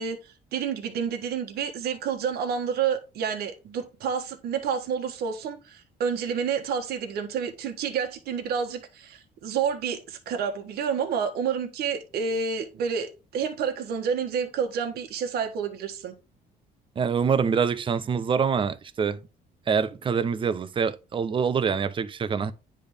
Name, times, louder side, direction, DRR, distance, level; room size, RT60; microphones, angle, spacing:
voice 1, 0.0-16.1, right 6 dB, 70° right, 1.3 m, -29 dB
voice 2, 17.0-19.2 19.7-22.5, right 6 dB, 30° right, 0.5 m, -25 dB
10.0 x 3.4 x 3.4 m
cardioid pair, 110°, 17 cm